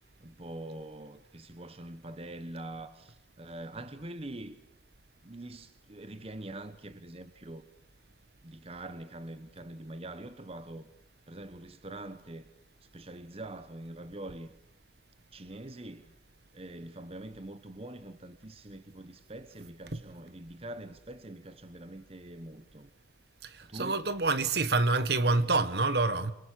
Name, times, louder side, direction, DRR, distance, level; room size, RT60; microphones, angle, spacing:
voice 1, 0.2-4.6 5.2-7.7 8.4-10.9 11.3-12.5 12.9-14.5 15.3-16.1 16.5-22.9 23.6-24.0, right 1 dB, 35° right, 1.1 m, -44 dB
voice 2, 23.4-26.3, right 3 dB, 60° right, 1.5 m, -27 dB
27.0 x 23.0 x 8.5 m
head